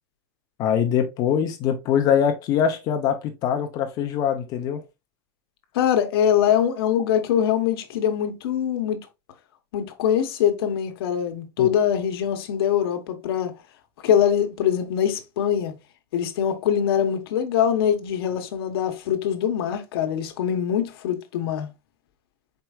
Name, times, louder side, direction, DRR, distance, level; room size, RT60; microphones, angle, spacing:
voice 1, 0.6-4.8 11.6-11.7, left 8 dB, 30° left, 0.5 m, -23 dB
voice 2, 5.7-9.1 9.7-13.5 14.0-15.7 16.1-21.7, left 9 dB, 80° left, 1.0 m, -23 dB
4.5 x 4.4 x 2.3 m
supercardioid pair, 170°, 12 cm